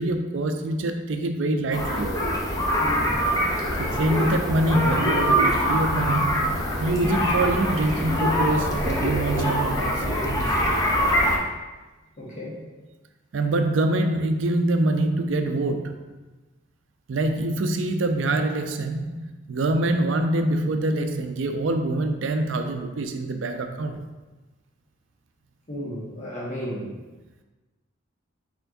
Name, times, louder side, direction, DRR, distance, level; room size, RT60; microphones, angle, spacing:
voice 1, 0.0-2.1 3.8-10.6 13.3-16.1 17.1-24.1, right 2 dB, 65° right, 6 dB, 0.4 m, -25 dB
sound 1, 1.7-11.4, equal, 20° left, 0.6 m, -24 dB
voice 2, 2.8-3.2 3.6-4.1 7.1-7.2 12.2-12.6 25.7-26.9, equal, 40° left, -6 dB, 1.3 m, -34 dB
4.4 x 4.4 x 2.7 m, 1.2 s
head